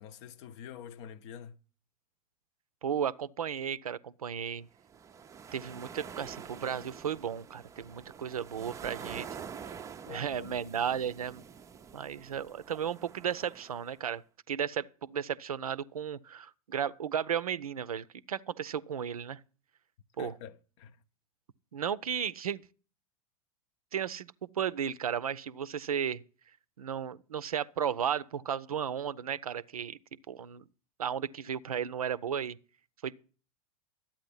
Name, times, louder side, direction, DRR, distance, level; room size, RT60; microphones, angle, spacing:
voice 1, 0.0-1.6 10.1-10.7 20.2-21.0, left 8 dB, 45° left, 0.7 m, -46 dB
voice 2, 2.8-4.7 5.5-9.3 9.6-9.8 10.1-11.4 11.9-14.2 14.5-19.4 20.2-20.3 21.7-22.6 23.9-26.2 26.8-30.0 30.3-30.6 31.0-32.6 33.0-33.1, right 8 dB, 75° right, 0.5 m, -34 dB
sound 1, 4.8-14.0, right 7 dB, 15° right, 0.5 m, -47 dB
12.0 x 8.8 x 5.4 m
figure-of-eight pair, 90°, 19 cm